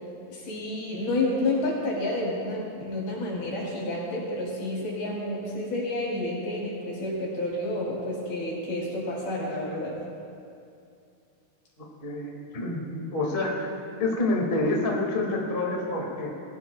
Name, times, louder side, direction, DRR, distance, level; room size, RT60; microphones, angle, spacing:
voice 1, 0.3-10.0, left 1 dB, 60° left, -5 dB, 5.2 m, -30 dB
voice 2, 12.0-13.7 14.0-16.3, left 2 dB, 35° left, -2 dB, 0.8 m, -27 dB
21.5 x 16.5 x 2.3 m, 2.5 s
omnidirectional pair, 4.7 m